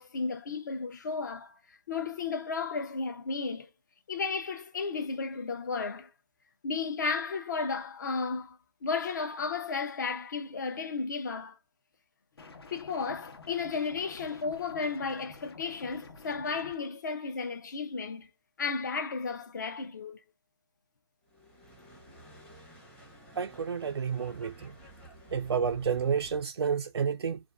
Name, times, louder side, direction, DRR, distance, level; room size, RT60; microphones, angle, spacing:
voice 1, 0.0-1.6 1.9-3.7 4.1-6.1 6.6-11.6 12.7-18.3 18.6-20.2, left 4 dB, 45° left, 0.6 m, -33 dB
sound 1, 12.4-16.8, left 3 dB, 75° left, 1.0 m, -50 dB
sound 2, 21.3-26.4, right 1 dB, 5° left, 0.6 m, -52 dB
voice 2, 23.4-24.7 25.3-27.4, right 6 dB, 80° right, 0.4 m, -30 dB
2.5 x 2.4 x 2.3 m
hypercardioid pair, 160°, 13 cm